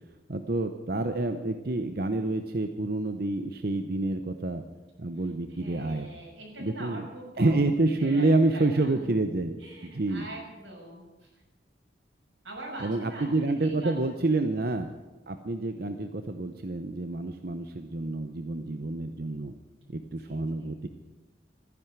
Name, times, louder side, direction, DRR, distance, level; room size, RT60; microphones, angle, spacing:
voice 1, 0.3-4.6 5.0-6.1 6.6-7.0 7.4-9.6 9.8-10.3 12.8-14.9 15.3-19.5 19.9-20.9, right 2 dB, 55° right, 7 dB, 0.8 m, -28 dB
voice 2, 5.5-9.2 9.6-11.4 12.4-14.2 14.5-14.8 20.2-20.7, right 1 dB, 90° right, -1 dB, 6.4 m, -43 dB
14.5 x 10.5 x 9.0 m, 1.2 s
head